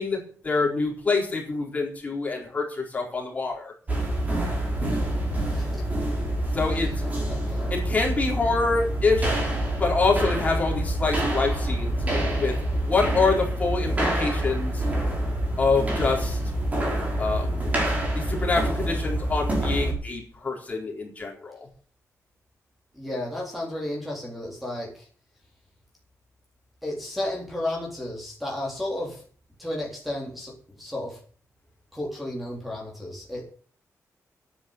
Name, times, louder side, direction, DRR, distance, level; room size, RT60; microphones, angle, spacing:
voice 1, 0.0-3.7 6.5-7.1 7.7-9.4 9.8-12.0 12.4-12.6 12.8-14.8 15.6-16.4 17.2-17.7 18.1-21.7, left 3 dB, 25° left, -1 dB, 4.3 m, -26 dB
sound 1, 3.9-19.9, right 1 dB, 25° right, 5.1 m, -26 dB
voice 2, 5.5-5.9 6.7-7.8 22.9-25.1 26.8-29.2 29.6-31.2 31.9-33.4, left 1 dB, ahead, -2 dB, 3.8 m, -33 dB
10.0 x 10.0 x 8.2 m, 0.43 s
wide cardioid pair, 175°, 6 cm